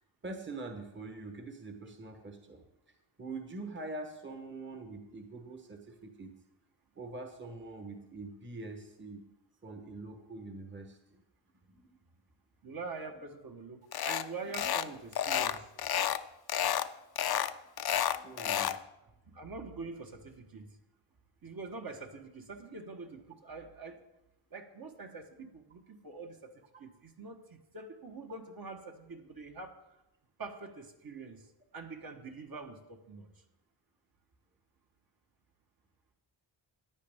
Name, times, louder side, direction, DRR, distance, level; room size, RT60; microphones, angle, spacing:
voice 1, 0.2-2.6 3.2-6.3 7.0-9.3 9.6-11.2 14.6-14.7 18.1-18.8, right 3 dB, 25° right, 5 dB, 1.1 m, -44 dB
voice 2, 12.6-15.7 19.3-20.8 21.4-24.0 24.5-26.5 26.8-29.8 30.4-31.5 31.7-33.3, right 4 dB, 50° right, 3 dB, 1.3 m, -45 dB
sound 1, 13.9-14.3 14.5-14.9 15.1-16.2 16.5-16.9 17.2-18.8, left 10 dB, 55° left, 0.5 m, -30 dB
14.5 x 9.7 x 3.5 m, 0.92 s
wide cardioid pair, 125°, 47 cm